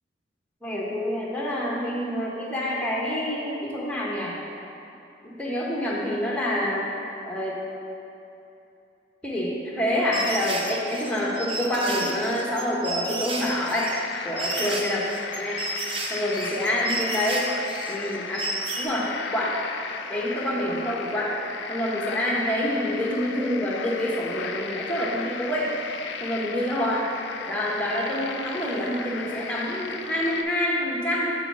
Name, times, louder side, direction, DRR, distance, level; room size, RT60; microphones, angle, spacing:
voice 1, 0.6-4.4 5.2-6.8 7.3-7.6 9.2-13.9 14.2-15.0 15.4-15.6 16.1-17.5 17.9-18.4 18.8-19.6 20.1-21.4 21.7-25.7 26.2-27.1 27.5-31.3, left 1 dB, 5° left, -4 dB, 0.9 m, -27 dB
sound 1, 10.1-18.9, right 2 dB, 30° right, 0.6 m, -32 dB
sound 2, 13.4-30.4, left 5 dB, 70° left, 0.4 m, -36 dB
4.9 x 4.0 x 5.8 m, 2.8 s
head